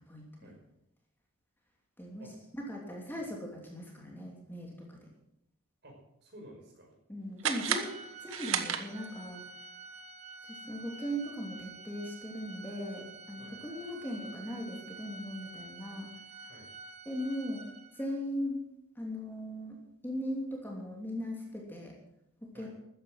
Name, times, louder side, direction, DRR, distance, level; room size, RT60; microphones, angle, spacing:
voice 1, 0.1-0.5 2.0-2.3 2.7-5.0 7.1-7.9 8.2-9.4 10.4-16.1 17.1-17.6 17.9-18.6 19.0-19.8 20.0-21.9 22.4-22.7, equal, 10° left, -1 dB, 2.9 m, -39 dB
voice 2, 5.8-7.0 13.4-13.6 16.5-16.7 22.5-22.7, right 1 dB, 50° right, 0 dB, 5.6 m, -53 dB
sound 1, 7.4-9.3, right 8 dB, 70° right, 1.3 m, -34 dB
Organ, 7.5-18.2, right 3 dB, 30° right, 1.3 m, -49 dB
13.5 x 10.0 x 7.8 m, 0.82 s
head